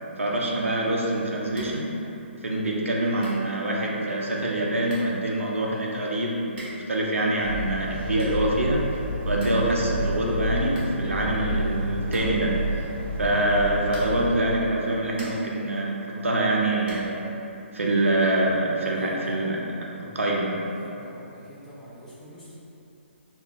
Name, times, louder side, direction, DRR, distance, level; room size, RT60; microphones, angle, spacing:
voice 1, 0.2-1.9 2.4-8.8 9.3-12.8 13.2-17.2 17.7-19.6 20.0-20.5, right 1 dB, 85° right, -3 dB, 0.5 m, -25 dB
sound 1, 1.5-1.9 2.2-2.3 2.9-3.0 3.2-3.5 4.5-4.6 4.8-5.2 6.5-6.9 7.9-8.5 8.9-9.0 9.2-9.7 10.0-10.1 10.4-10.5 10.7-11.5 12.1-12.6 13.8-14.3 14.8-15.6 16.8-17.2, right 1 dB, 45° right, 0.9 m, -44 dB
sound 2, 7.4-14.3, equal, 50° left, 0.7 m, -30 dB
voice 2, 18.8-19.6 20.8-22.5, equal, 5° left, -11 dB, 0.7 m, -46 dB
2.3 x 2.3 x 3.5 m, 2.9 s
figure-of-eight pair, 140°, 7 cm